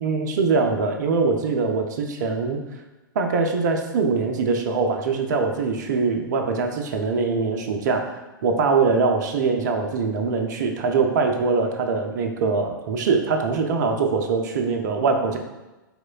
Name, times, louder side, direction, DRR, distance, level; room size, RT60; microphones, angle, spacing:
voice 1, 0.0-2.6 3.1-8.2 8.4-15.4, right 4 dB, 55° right, 3 dB, 0.5 m, -23 dB
4.3 x 3.0 x 2.2 m, 1.1 s
figure-of-eight pair, 105°, 11 cm